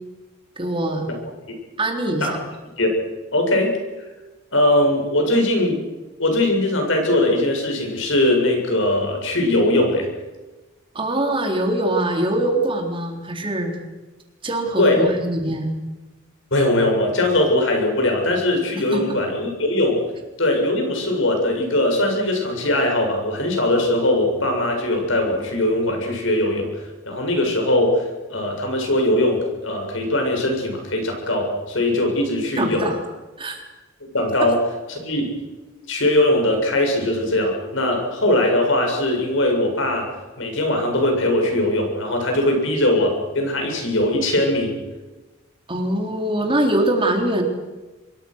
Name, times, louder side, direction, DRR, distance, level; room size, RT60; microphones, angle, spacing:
voice 1, 0.6-1.1 1.8-2.4 10.9-13.7 14.4-15.7 18.9-19.0 32.6-33.0 33.4-33.6 45.7-47.4, right 1 dB, 25° right, 2 dB, 4.0 m, -23 dB
voice 2, 3.3-3.7 4.5-5.8 6.2-10.1 14.8-15.0 16.5-20.0 20.4-32.9 34.1-34.6 34.9-35.3 35.9-40.1 40.4-44.8, left 1 dB, 70° left, 2 dB, 7.6 m, -20 dB
26.0 x 22.5 x 6.5 m, 1.2 s
head